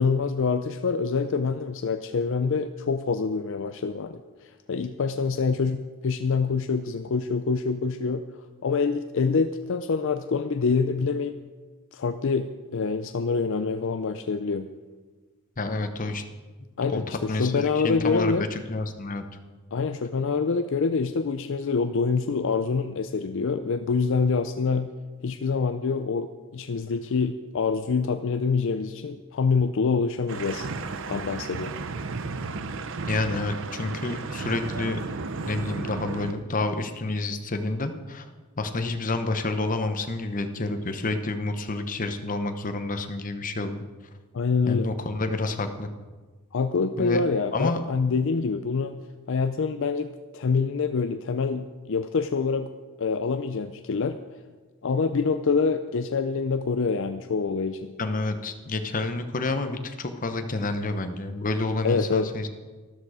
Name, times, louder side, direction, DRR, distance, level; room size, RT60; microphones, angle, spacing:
voice 1, 0.0-4.2 4.7-8.2 8.6-11.4 11.9-14.7 16.8-18.5 19.7-24.9 25.2-26.3 26.5-30.7 31.1-31.7 44.3-44.9 46.5-49.0 49.3-52.7 53.0-54.2 54.8-57.9 61.8-62.3, left 4 dB, 60° left, 9 dB, 0.5 m, -26 dB
voice 2, 15.6-16.2 16.9-17.0 17.3-19.2 33.1-35.0 35.5-38.3 38.6-43.8 44.7-45.9 47.0-47.2 47.5-47.8 58.0-62.5, left 2 dB, 40° left, 7 dB, 0.9 m, -29 dB
sound 1, 30.3-36.3, right 3 dB, 60° right, 0.7 m, -33 dB
13.0 x 12.5 x 4.9 m, 1.3 s
head